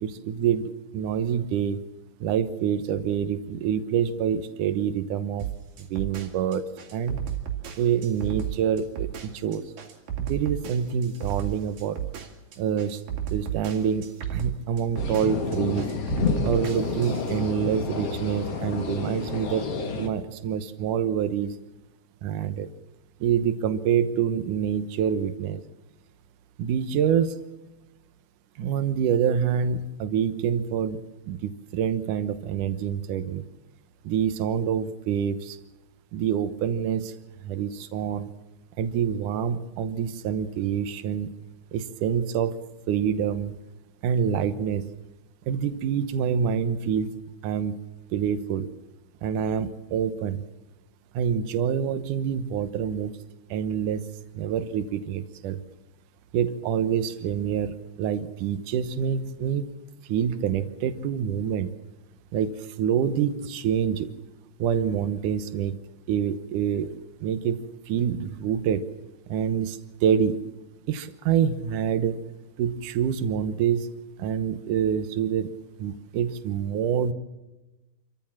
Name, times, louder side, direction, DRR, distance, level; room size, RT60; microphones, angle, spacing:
voice 1, 0.0-1.8 2.2-5.5 5.8-7.2 7.8-9.7 10.2-12.0 12.6-13.0 13.3-15.9 16.4-19.7 20.0-21.5 22.2-22.7 23.2-25.6 26.6-27.4 28.6-31.0 31.3-33.4 34.0-35.6 36.1-37.2 37.4-38.3 38.8-41.3 41.7-42.6 42.9-43.6 44.0-44.9 45.5-47.1 47.4-47.8 48.1-48.7 49.2-50.4 51.1-53.1 53.5-54.1 54.4-55.6 56.3-59.6 60.1-61.7 62.3-64.1 64.6-65.8 66.1-66.9 67.2-68.9 69.3-70.4 70.9-72.2 72.6-73.9 74.2-75.5 75.8-77.1, right 8 dB, 80° right, 11 dB, 1.8 m, -26 dB
sound 1, 5.4-17.4, right 10 dB, 55° right, 3.8 m, -33 dB
sound 2, 15.0-20.1, left 5 dB, 45° left, 2.4 m, -30 dB
27.5 x 14.5 x 7.4 m, 1.0 s
omnidirectional pair, 5.2 m